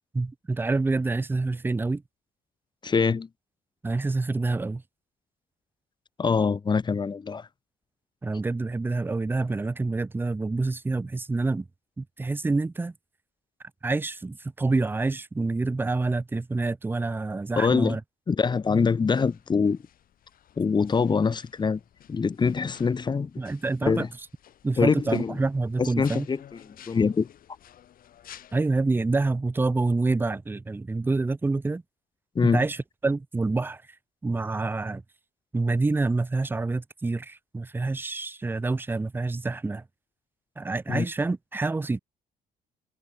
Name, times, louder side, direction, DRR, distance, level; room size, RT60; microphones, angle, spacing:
voice 1, 0.1-2.0 3.8-4.8 8.2-11.7 12.0-12.9 13.8-18.0 23.4-24.1 24.6-26.3 28.5-31.8 32.5-33.8 34.2-35.0 35.5-39.8 40.6-42.0, right 3 dB, 10° right, 0.7 m, -27 dB
voice 2, 2.8-3.3 6.2-7.5 17.6-18.0 18.3-19.8 20.6-21.8 22.1-23.3 23.8-24.1 24.8-25.3 25.8-26.4 26.7-27.3 32.3-32.6 40.9-41.0, left 5 dB, 25° left, 1.3 m, -24 dB
sound 1, 18.7-28.6, left 10 dB, 55° left, 5.2 m, -53 dB
cardioid pair, 110°, 17 cm